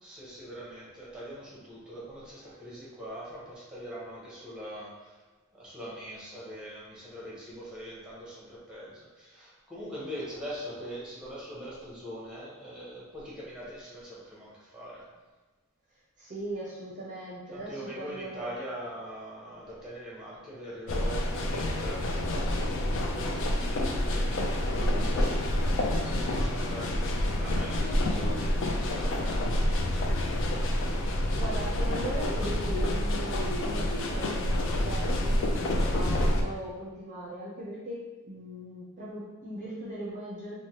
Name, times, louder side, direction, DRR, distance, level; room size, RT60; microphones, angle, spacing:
voice 1, 0.0-5.2 5.5-15.1 17.5-25.6 25.9-30.8, equal, 5° right, -7 dB, 0.8 m, -42 dB
voice 2, 16.2-18.5 31.4-40.6, right 1 dB, 35° right, -6 dB, 0.5 m, -39 dB
sound 1, 20.9-36.4, left 1 dB, 60° left, 0.4 m, -28 dB
3.1 x 2.1 x 2.8 m, 1.3 s
head